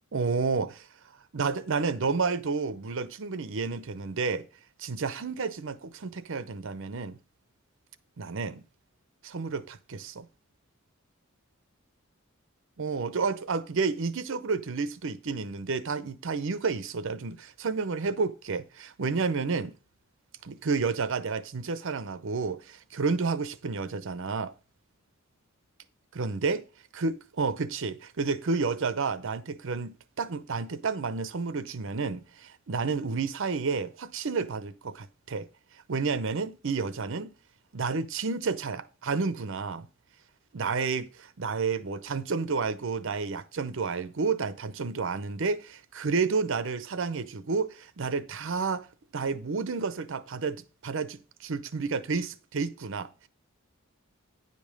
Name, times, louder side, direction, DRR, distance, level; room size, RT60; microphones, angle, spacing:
voice 1, 0.1-0.9 1.3-4.4 4.8-7.2 8.2-8.6 9.2-10.3 12.8-19.7 20.4-24.5 26.1-26.6 26.9-35.5 35.9-37.3 37.7-39.9 40.5-48.9 49.1-53.3, right 4 dB, 65° right, 0.7 m, -30 dB
9.6 x 5.3 x 5.2 m
head